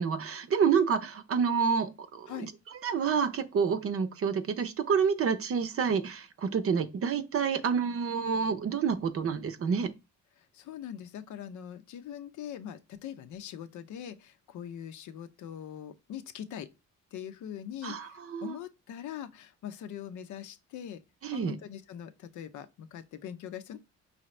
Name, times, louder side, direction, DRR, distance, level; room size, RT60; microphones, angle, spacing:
voice 1, 0.0-2.3 2.8-9.9 17.8-18.5 21.2-21.6, right 6 dB, 50° right, 0.6 m, -28 dB
voice 2, 10.5-16.7 17.1-21.0 21.3-23.8, left 9 dB, 75° left, 0.6 m, -42 dB
5.0 x 2.7 x 3.2 m
cardioid pair, 90°, 30 cm